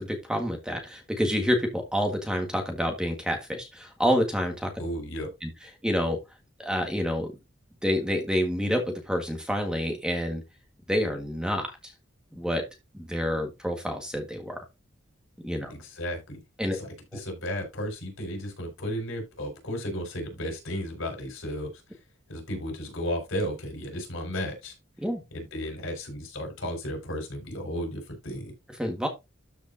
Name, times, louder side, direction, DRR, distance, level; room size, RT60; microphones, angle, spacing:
voice 1, 0.0-4.7 5.4-5.5 5.8-6.2 6.6-7.3 7.8-10.4 10.9-11.9 12.3-12.6 12.9-14.6 15.4-15.7 16.6-16.8 25.0-25.2 28.8-29.1, equal, 5° right, 1.7 m, -28 dB
voice 2, 4.8-5.3 15.7-16.4 16.7-16.9 17.1-21.7 22.3-24.7 25.3-28.5, equal, 90° left, 4.7 m, -34 dB
13.0 x 5.1 x 2.7 m
head